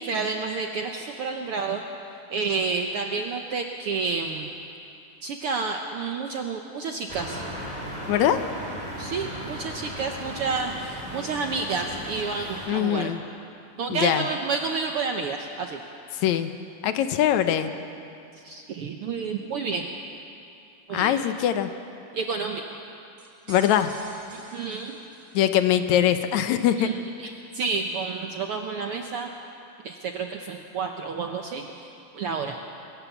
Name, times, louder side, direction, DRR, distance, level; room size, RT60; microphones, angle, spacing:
voice 1, 0.0-1.8 2.3-4.5 5.2-7.4 9.0-13.1 13.8-15.8 18.4-19.9 20.9-21.2 22.1-22.6 24.3-25.0 26.8-26.9 27.2-29.3 29.8-31.9 32.1-32.6, right 4 dB, 75° right, 3 dB, 1.3 m, -30 dB
sound 1, 7.1-12.7, equal, 15° right, 3.4 m, -36 dB
voice 2, 8.1-8.4 12.7-13.2 13.9-14.3 16.1-16.5 16.8-17.7 20.9-21.7 23.5-23.9 25.3-26.9, left 11 dB, 75° left, 9 dB, 2.0 m, -22 dB
sound 2, 23.2-25.7, right 2 dB, 55° right, 5.0 m, -46 dB
22.0 x 17.0 x 7.1 m, 2.6 s
omnidirectional pair, 3.7 m